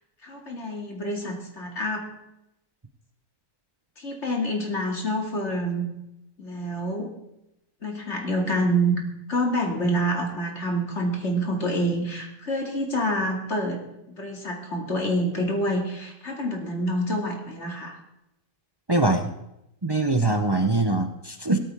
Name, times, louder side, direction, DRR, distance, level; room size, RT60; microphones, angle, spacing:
voice 1, 0.2-2.1 4.0-5.9 6.4-7.1 7.8-9.0 9.3-13.8 14.1-17.9, equal, 45° left, 1 dB, 2.7 m, -27 dB
voice 2, 18.9-19.3 19.8-21.6, right 2 dB, 25° right, 6 dB, 0.6 m, -23 dB
17.5 x 13.0 x 3.6 m, 0.86 s
omnidirectional pair, 1.6 m